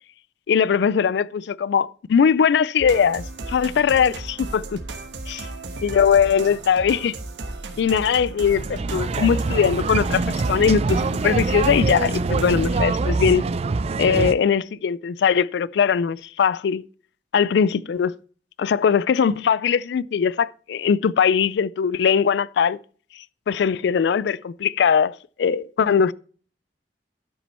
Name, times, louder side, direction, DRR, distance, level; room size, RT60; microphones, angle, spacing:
voice 1, 0.5-4.8 5.8-7.2 7.8-13.4 14.0-16.8 17.3-18.1 18.6-22.8 23.5-26.1, left 7 dB, 65° left, 0.3 m, -20 dB
sound 1, 2.8-12.8, right 2 dB, 80° right, 1.4 m, -35 dB
sound 2, 8.6-14.3, right 3 dB, 35° right, 0.4 m, -24 dB
12.5 x 6.1 x 4.2 m
head